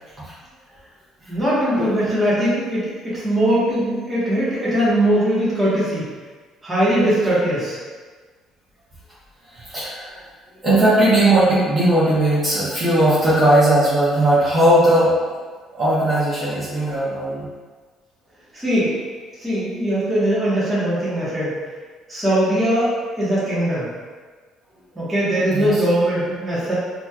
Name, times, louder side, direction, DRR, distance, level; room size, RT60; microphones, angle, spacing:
voice 1, 1.3-6.1 6.6-7.8 18.5-18.9 19.4-21.6 22.1-23.9 24.9-26.7, right 1 dB, 15° right, -10 dB, 1.4 m, -20 dB
voice 2, 9.4-10.3 10.6-15.1 15.8-17.5 25.5-25.8, right 1 dB, 35° right, -10 dB, 1.2 m, -18 dB
4.2 x 2.9 x 2.4 m, 1.4 s
cardioid pair, 115°, 0 cm